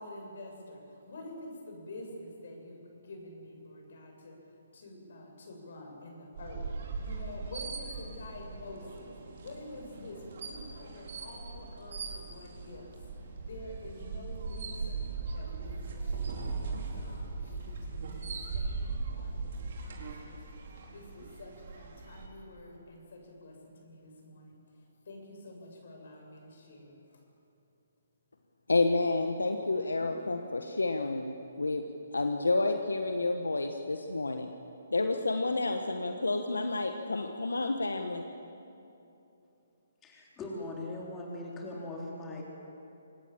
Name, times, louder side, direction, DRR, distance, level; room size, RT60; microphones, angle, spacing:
voice 1, 0.0-4.4 4.7-9.1 9.4-12.9 13.2-20.4 20.9-27.2 29.9-30.4, left 1 dB, 60° left, 1 dB, 7.3 m, -48 dB
sound 1, 6.3-22.3, right 4 dB, 55° right, 4.2 m, -39 dB
voice 2, 28.7-31.3 31.6-31.8 32.1-34.5 34.9-38.2, left 2 dB, 85° left, 6 dB, 1.3 m, -30 dB
voice 3, 40.0-42.4, left 2 dB, 15° left, -3 dB, 4.0 m, -40 dB
25.5 x 19.0 x 7.5 m, 2.9 s
figure-of-eight pair, 140°, 0 cm